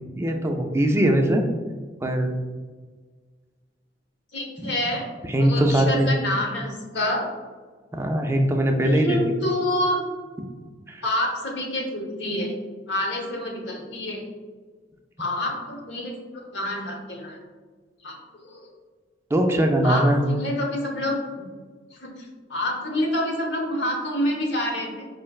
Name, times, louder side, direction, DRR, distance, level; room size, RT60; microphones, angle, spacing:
voice 1, 0.2-1.5 2.0-2.3 4.6-4.7 5.3-6.1 7.9-9.2 10.9-11.0 19.3-20.2, right 1 dB, 15° right, 3 dB, 0.3 m, -21 dB
voice 2, 4.3-5.1 5.4-7.3 8.9-10.0 11.0-12.6 12.9-14.2 15.2-17.4 18.0-18.2 18.4-18.7 19.8-21.4 21.9-22.1 22.5-25.1, left 1 dB, 70° left, 0 dB, 0.9 m, -27 dB
4.7 x 3.2 x 2.3 m, 1.4 s
head